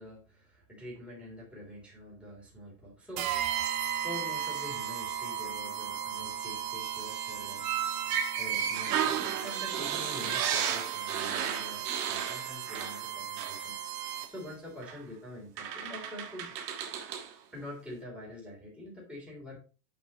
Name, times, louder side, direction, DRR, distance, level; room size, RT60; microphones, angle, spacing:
voice 1, 0.0-7.7 8.1-16.5 17.5-19.6, left 1 dB, ahead, -5 dB, 3.3 m, -46 dB
sound 1, 3.2-14.5, right 9 dB, 35° right, 0.9 m, -36 dB
sound 2, 7.6-13.1 13.4-13.6 14.8-15.0 15.6-17.3, right 8 dB, 70° right, 1.6 m, -33 dB
8.8 x 5.8 x 3.0 m, 0.34 s
supercardioid pair, 150°, 50 cm